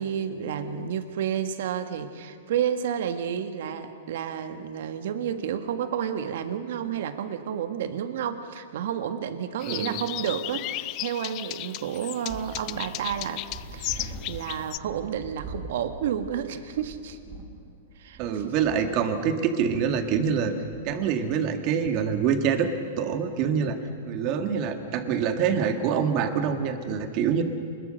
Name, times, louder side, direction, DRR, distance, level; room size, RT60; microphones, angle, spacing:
voice 1, 0.0-13.5 13.7-17.2 18.0-18.5, right 8 dB, 60° right, 8 dB, 1.7 m, -31 dB
sound 1, 9.6-14.8, left 18 dB, 35° left, 0.5 m, -35 dB
voice 2, 9.7-10.0 18.2-20.5 20.8-22.7 23.0-23.8 24.1-27.4, right 7 dB, 35° right, 6 dB, 2.0 m, -25 dB
sound 2, 12.3-21.3, right 2 dB, 20° right, 4.8 m, -43 dB
25.0 x 21.0 x 6.6 m, 2.2 s
hypercardioid pair, 155°, 0 cm